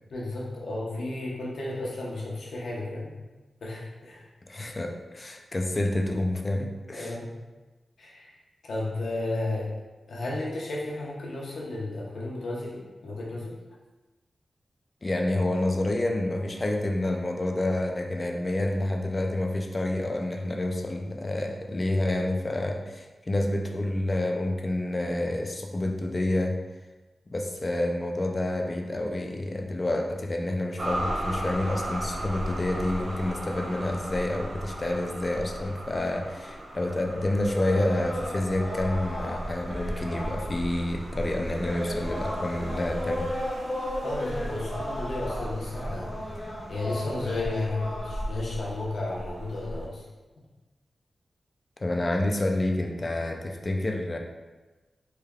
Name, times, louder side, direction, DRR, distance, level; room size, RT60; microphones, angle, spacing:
voice 1, 0.1-3.1 3.6-4.2 6.9-7.3 8.0-8.3 8.7-9.7 10.1-13.6 44.0-46.2 46.7-50.0, left 2 dB, 70° left, -4 dB, 0.7 m, -33 dB
voice 2, 4.5-7.1 15.0-26.6 27.3-43.3 51.8-54.2, left 1 dB, 25° left, 3 dB, 0.3 m, -28 dB
sound 1, 30.8-49.9, right 1 dB, 45° right, 0.5 m, -36 dB
sound 2, 37.5-40.6 41.5-48.2, left 1 dB, 50° left, 1.0 m, -35 dB
3.3 x 2.2 x 3.4 m, 1.2 s
wide cardioid pair, 165°, 0 cm